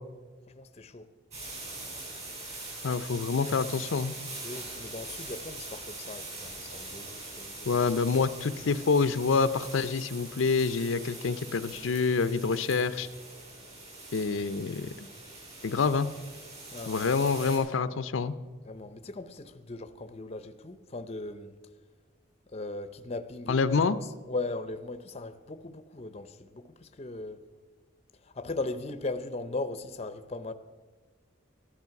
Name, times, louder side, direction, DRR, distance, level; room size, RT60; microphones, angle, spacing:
voice 1, 0.5-1.1 3.4-3.6 4.4-7.8 16.7-17.0 18.6-21.5 22.5-23.6 24.3-27.4 28.2-30.5, left 2 dB, 30° left, 0.6 m, -38 dB
sound 1, 1.3-17.6, right 2 dB, 35° right, 4.8 m, -43 dB
voice 2, 2.8-4.1 7.7-13.1 14.1-15.1 15.6-16.1 16.9-18.3 23.5-24.0, left 4 dB, 80° left, 0.5 m, -27 dB
14.5 x 11.0 x 5.8 m
head